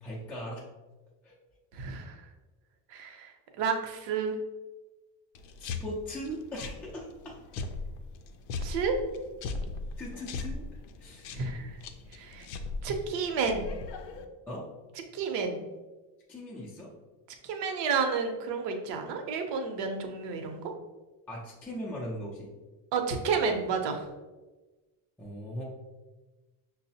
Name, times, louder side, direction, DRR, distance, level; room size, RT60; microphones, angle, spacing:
voice 1, 0.0-0.6 1.2-1.4 5.6-7.4 10.0-11.5 14.5-14.7 16.3-16.9 21.3-22.5 25.2-25.6, equal, 5° left, -5 dB, 0.3 m, -39 dB
voice 2, 1.7-2.2 2.9-4.3 8.6-9.0 11.3-11.7 12.1-12.5 12.8-13.7 15.1-15.6 17.4-20.7 22.9-24.1, right 5 dB, 70° right, 4 dB, 0.7 m, -31 dB
sound 1, 5.3-14.2, left 3 dB, 70° left, 0.5 m, -39 dB
5.9 x 2.0 x 2.7 m, 1.2 s
cardioid pair, 150°, 44 cm